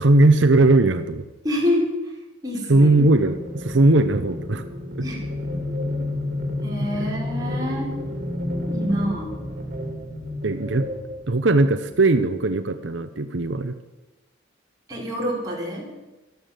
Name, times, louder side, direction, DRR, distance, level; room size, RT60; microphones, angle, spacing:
voice 1, 0.0-1.2 2.7-4.6 6.9-7.1 10.4-10.9 11.3-13.7, right 2 dB, 80° right, 9 dB, 0.9 m, -18 dB
voice 2, 1.4-2.1 2.4-2.9 5.0-5.3 6.6-7.9 8.7-9.4 14.9-15.9, left 1 dB, 20° right, -4 dB, 5.3 m, -26 dB
sound 1, 3.2-11.9, left 1 dB, 50° right, 3.7 m, -30 dB
13.5 x 12.0 x 7.6 m, 1.1 s
head